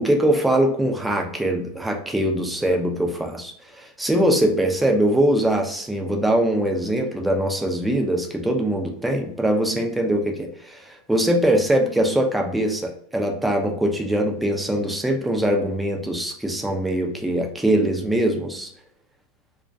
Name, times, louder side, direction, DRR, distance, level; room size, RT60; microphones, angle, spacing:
voice 1, 0.0-18.7, right 1 dB, 5° right, 2 dB, 0.5 m, -22 dB
2.2 x 2.2 x 2.6 m, 0.63 s
hypercardioid pair, 95°, 0 cm